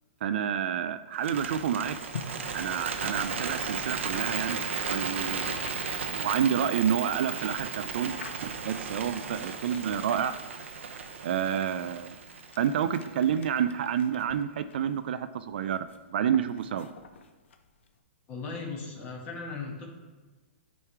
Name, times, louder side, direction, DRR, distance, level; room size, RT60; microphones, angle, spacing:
voice 1, 0.2-2.0 2.5-4.6 4.9-8.1 8.4-10.3 11.2-12.1 12.6-16.9, right 8 dB, 60° right, 11 dB, 0.3 m, -29 dB
Bird, 1.1-13.3, right 5 dB, 90° right, 0.7 m, -35 dB
sound 1, 2.1-4.3 5.3-6.1 7.0-8.7 9.4-10.8 11.6-18.0, left 5 dB, 75° left, 0.7 m, -48 dB
voice 2, 18.3-19.9, left 4 dB, 25° left, -1 dB, 1.3 m, -37 dB
8.6 x 3.1 x 4.7 m, 1.3 s
hypercardioid pair, 160°, 6 cm